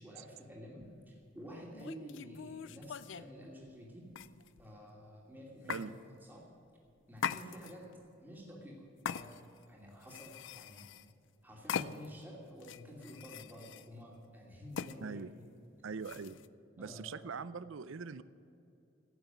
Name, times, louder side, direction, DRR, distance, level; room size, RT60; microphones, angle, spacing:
voice 1, 0.0-4.1 4.6-5.9 6.2-6.5 7.1-7.8 8.2-9.3 9.7-10.9 11.4-15.2 16.8-17.3, equal, 10° right, -3 dB, 2.7 m, -50 dB
sound 1, 0.8-1.0 1.7-3.3 4.1-4.7 5.7-5.9 7.2-7.9 9.1-9.6 10.0-11.1 11.7-12.2 12.6-13.9 14.7-15.0 16.0-16.5, left 7 dB, 65° left, 0.4 m, -41 dB
voice 2, 15.8-16.4 16.8-18.2, right 5 dB, 75° right, 16 dB, 0.5 m, -42 dB
15.5 x 7.2 x 9.2 m, 2.6 s
head